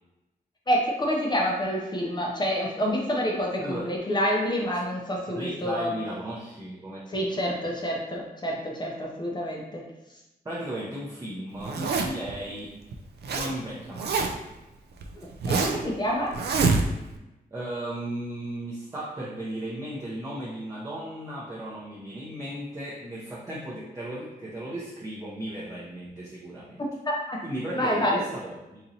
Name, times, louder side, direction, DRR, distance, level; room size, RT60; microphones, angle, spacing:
voice 1, 0.7-5.9 7.1-9.8 15.5-16.3 27.1-27.4 27.8-28.3, equal, 25° left, -2 dB, 0.5 m, -27 dB
voice 2, 3.6-3.9 5.3-7.5 10.4-12.8 13.3-14.2 17.5-26.8 27.4-28.8, right 1 dB, 20° right, -7 dB, 0.6 m, -36 dB
Zipper (clothing), 11.6-12.3 12.9-13.5 13.8-14.5 15.0-15.9 16.3-17.2, right 4 dB, 85° right, 0.4 m, -25 dB
4.0 x 2.9 x 2.6 m, 0.98 s
wide cardioid pair, 175°, 17 cm